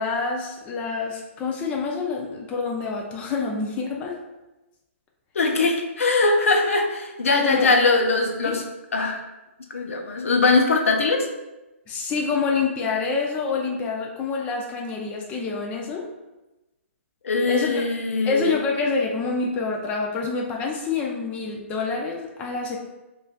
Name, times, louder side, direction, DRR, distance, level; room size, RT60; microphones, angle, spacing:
voice 1, 0.0-4.2 7.4-7.7 8.4-8.6 11.9-16.1 17.5-17.8 18.3-22.8, left 4 dB, 15° left, 0 dB, 0.4 m, -27 dB
voice 2, 5.3-8.6 8.9-9.2 9.7-11.3 17.2-18.5, left 3 dB, 80° left, 3 dB, 0.7 m, -21 dB
6.0 x 2.5 x 2.3 m, 1.0 s
hypercardioid pair, 150°, 7 cm